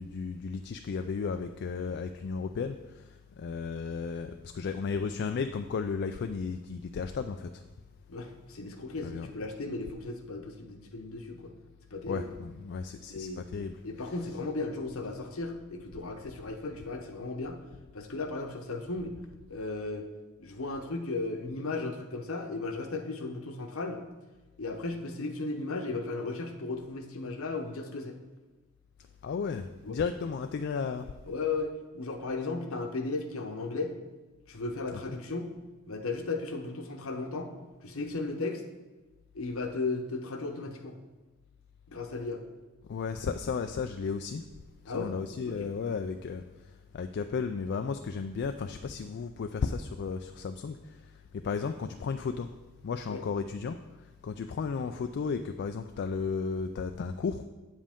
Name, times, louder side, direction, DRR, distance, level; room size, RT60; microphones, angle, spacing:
voice 1, 0.0-7.5 9.0-9.3 12.1-14.4 29.2-31.1 34.9-35.2 42.9-44.4 44.9-46.4 46.9-51.0 51.3-52.5 52.8-53.8 54.2-57.4, left 5 dB, 50° left, 7 dB, 0.3 m, -34 dB
voice 2, 8.1-11.5 11.9-12.3 13.1-13.4 13.8-17.6 17.9-19.2 19.5-20.1 20.4-24.0 24.6-28.2 29.8-30.0 31.3-33.9 34.5-35.5 35.9-37.5 37.8-38.6 39.3-40.9 41.9-42.4 44.9-45.2 45.4-45.7 53.1-53.2, left 3 dB, 65° left, 5 dB, 0.9 m, -35 dB
8.4 x 7.4 x 3.6 m, 1.2 s
head